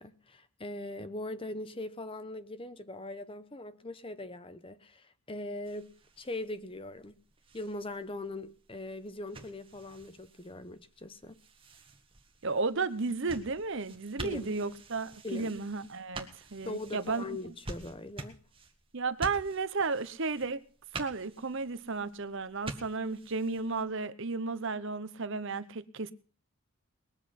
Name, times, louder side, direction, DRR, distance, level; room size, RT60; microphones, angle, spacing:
voice 1, 0.0-5.9 6.2-7.2 7.5-11.4 14.2-14.5 15.2-15.6 16.6-18.4, left 2 dB, 25° left, 0.8 m, -41 dB
sound 1, 5.6-23.8, right 2 dB, 25° right, 1.8 m, -48 dB
voice 2, 12.4-17.2 18.9-20.6 20.9-26.1, right 4 dB, 55° right, 0.9 m, -33 dB
21.0 x 8.0 x 5.9 m
head